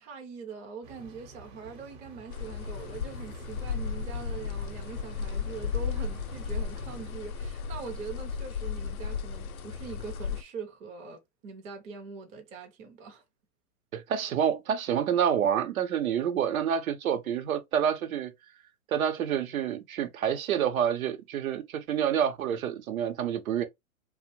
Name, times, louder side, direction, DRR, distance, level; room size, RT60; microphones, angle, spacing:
voice 1, 0.0-13.2, right 5 dB, 20° right, 0.4 m, -43 dB
sound 1, 0.8-7.1, right 3 dB, 40° right, 0.8 m, -48 dB
sound 2, 2.3-10.4, left 6 dB, 85° left, 0.6 m, -35 dB
voice 2, 13.9-18.3 18.9-23.6, right 8 dB, 80° right, 0.7 m, -28 dB
2.5 x 2.0 x 2.9 m
hypercardioid pair, 125°, 41 cm